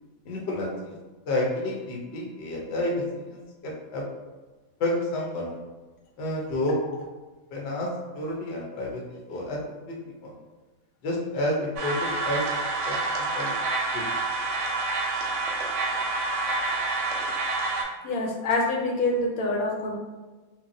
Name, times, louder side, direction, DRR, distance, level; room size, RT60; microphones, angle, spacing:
voice 1, 0.3-0.9 1.3-4.0 4.8-5.6 6.2-6.8 7.5-7.9 8.1-9.6 9.9-10.3 11.0-12.4 12.8-13.6 13.9-14.1, left 1 dB, 60° left, -2 dB, 0.8 m, -30 dB
sound 1, 11.8-17.8, right 3 dB, 65° right, 0.9 m, -28 dB
voice 2, 18.0-20.0, left 2 dB, 85° left, -1 dB, 1.1 m, -26 dB
3.0 x 2.2 x 2.6 m, 1.2 s
omnidirectional pair, 1.4 m